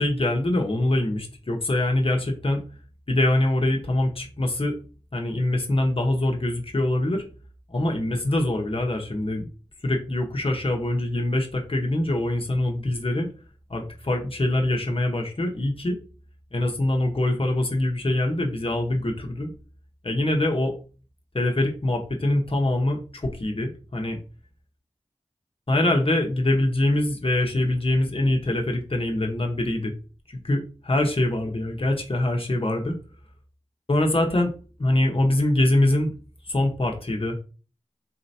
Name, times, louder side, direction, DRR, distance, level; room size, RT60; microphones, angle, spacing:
voice 1, 0.0-2.6 3.1-4.8 5.1-7.2 7.7-9.5 9.8-13.3 13.7-16.0 16.5-19.5 20.0-20.7 21.3-24.2 25.7-29.9 30.3-33.0 33.9-34.5 34.8-36.1 36.5-37.3, left 1 dB, 50° left, 2 dB, 1.0 m, -24 dB
4.2 x 2.9 x 2.7 m, 0.36 s
wide cardioid pair, 45°, 12 cm